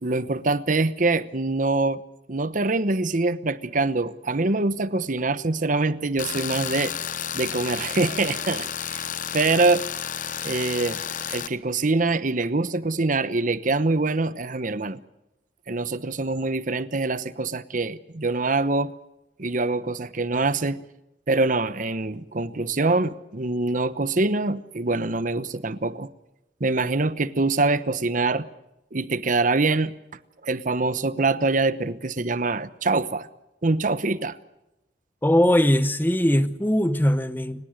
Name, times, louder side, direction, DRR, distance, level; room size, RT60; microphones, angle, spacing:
voice 1, 0.0-2.0 2.3-6.9 7.3-9.1 9.3-9.8 10.4-11.0 11.3-15.0 15.7-18.9 19.4-20.8 21.3-26.1 26.6-28.5 28.9-29.9 30.4-33.3 33.6-34.4, right 3 dB, 50° right, 1.0 m, -24 dB
Tools, 6.2-11.5, left 8 dB, 50° left, 1.0 m, -31 dB
voice 2, 35.2-37.6, equal, 10° left, 1.0 m, -20 dB
30.0 x 17.5 x 6.5 m
head